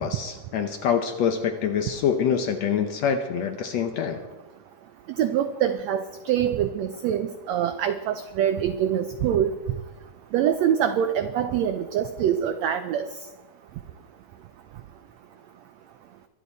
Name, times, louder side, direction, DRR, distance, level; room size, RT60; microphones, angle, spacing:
voice 1, 0.0-4.2, left 7 dB, 70° left, 6 dB, 1.7 m, -25 dB
voice 2, 5.1-9.5 10.3-13.1, right 9 dB, 85° right, 9 dB, 1.5 m, -24 dB
23.5 x 10.0 x 4.1 m, 1.1 s
omnidirectional pair, 3.8 m